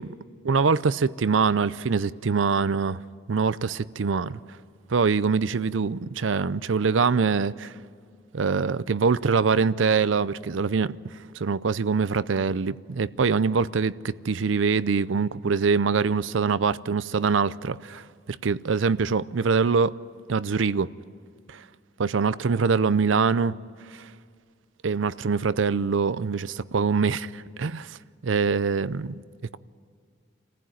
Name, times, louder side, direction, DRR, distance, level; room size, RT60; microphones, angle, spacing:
voice 1, 0.5-3.0 3.3-4.4 4.9-7.7 8.3-19.9 20.3-20.9 21.5-21.6 22.0-23.5 24.0-24.1 24.8-28.0 28.2-29.2, right 5 dB, 90° right, 0.5 m, -24 dB
27.0 x 15.0 x 9.2 m
head